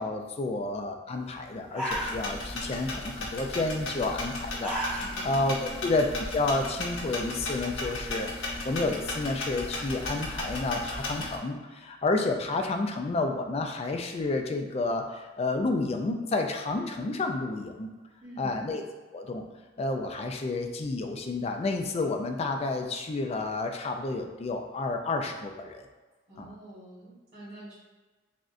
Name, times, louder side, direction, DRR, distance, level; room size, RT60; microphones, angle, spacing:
voice 1, 0.0-17.9 18.4-18.8 19.1-19.4 19.8-25.9 26.4-26.5, left 2 dB, 30° left, 4 dB, 0.3 m, -30 dB
sound 1, 1.3-1.4 1.6-2.6 2.9-3.3 4.3-5.4 5.8-5.9 6.4-7.4, right 1 dB, 5° right, 0.8 m, -34 dB
sound 2, 1.9-11.4, left 2 dB, 75° left, 0.8 m, -35 dB
voice 2, 5.0-5.3 5.6-5.8 18.2-18.6 26.3-27.8, right 1 dB, 30° right, -13 dB, 1.4 m, -46 dB
6.1 x 2.1 x 2.5 m, 1.3 s
head